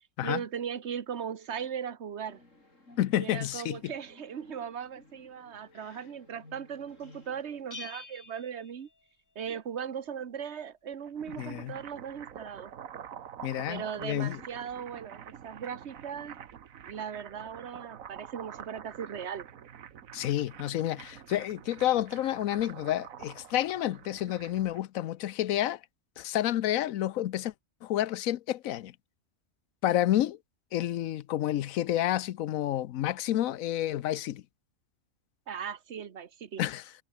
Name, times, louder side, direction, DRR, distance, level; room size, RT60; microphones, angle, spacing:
voice 1, 0.2-2.4 3.2-8.9 9.3-12.7 13.7-16.4 16.8-19.5 35.5-36.6, right 8 dB, 55° right, 1.4 m, -38 dB
sound 1, 2.3-7.6, left 2 dB, 65° left, 6.1 m, -57 dB
voice 2, 3.0-3.9 11.4-11.8 13.4-14.4 20.1-25.8 26.2-27.5 27.8-28.9 29.8-30.4 30.7-34.4 36.6-36.8, left 13 dB, 85° left, 1.1 m, -29 dB
Bell, 7.7-9.5, left 3 dB, 20° left, 0.5 m, -47 dB
sound 2, 10.9-24.8, right 8 dB, 80° right, 1.5 m, -47 dB
omnidirectional pair, 1.4 m